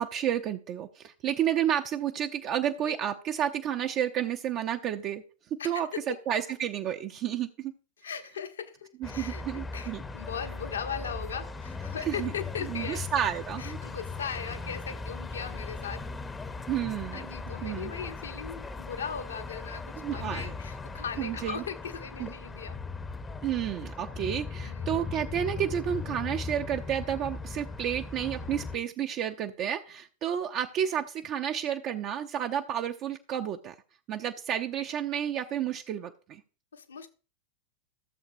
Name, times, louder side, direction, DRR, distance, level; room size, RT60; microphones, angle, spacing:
voice 1, 0.0-5.2 5.6-7.7 9.0-10.0 12.1-12.3 12.7-13.8 16.7-17.3 17.6-17.9 20.0-20.5 21.2-21.6 22.2-22.3 23.4-33.7 34.1-36.4, right 10 dB, 35° right, 0.5 m, -31 dB
voice 2, 5.6-6.2 8.0-13.1 13.6-16.1 17.1-22.8 24.6-24.9 36.7-37.1, left 7 dB, 70° left, 0.9 m, -38 dB
sound 1, 9.0-28.8, left 4 dB, 15° left, 0.7 m, -38 dB
14.5 x 7.2 x 2.7 m
figure-of-eight pair, 90°, 0 cm